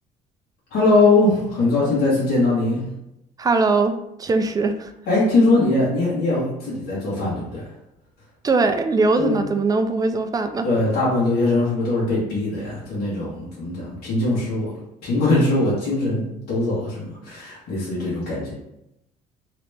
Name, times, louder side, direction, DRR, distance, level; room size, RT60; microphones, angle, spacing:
voice 1, 0.7-2.8 5.1-7.7 9.2-9.4 10.6-18.5, left 2 dB, 70° left, -8 dB, 1.5 m, -21 dB
voice 2, 3.4-3.9 4.2-4.9 8.4-10.7, right 3 dB, 20° right, 7 dB, 0.4 m, -20 dB
2.9 x 2.9 x 3.4 m, 0.83 s
cardioid pair, 110°, 17 cm